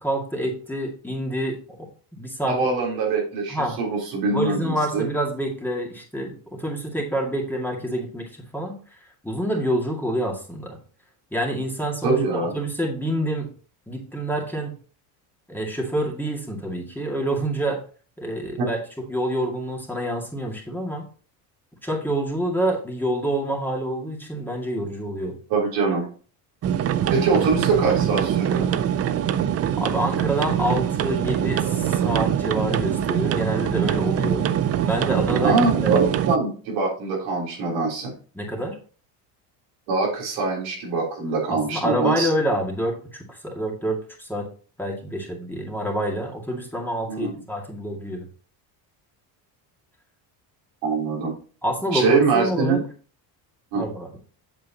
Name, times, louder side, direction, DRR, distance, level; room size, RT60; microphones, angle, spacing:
voice 1, 0.0-1.6 2.1-2.6 3.5-3.8 4.3-8.8 9.2-10.8 11.3-13.5 13.9-14.7 15.5-17.8 18.2-18.8 19.1-21.0 21.8-25.4 29.8-34.4 34.8-35.6 35.8-36.3 38.3-38.8 41.5-44.5 44.8-48.2 51.6-52.8 53.7-54.1, right 1 dB, 5° left, -1 dB, 2.1 m, -27 dB
voice 2, 2.5-5.1 12.0-12.5 18.6-18.7 25.5-26.1 27.1-28.7 35.4-38.1 39.9-42.3 47.1-47.3 50.8-51.4 51.9-52.8 53.7-53.8, right 4 dB, 90° right, -2 dB, 3.5 m, -23 dB
sound 1, 26.6-36.4, right 9 dB, 35° right, 0.4 m, -23 dB
8.1 x 6.4 x 2.8 m, 0.40 s
cardioid pair, 105°, 46 cm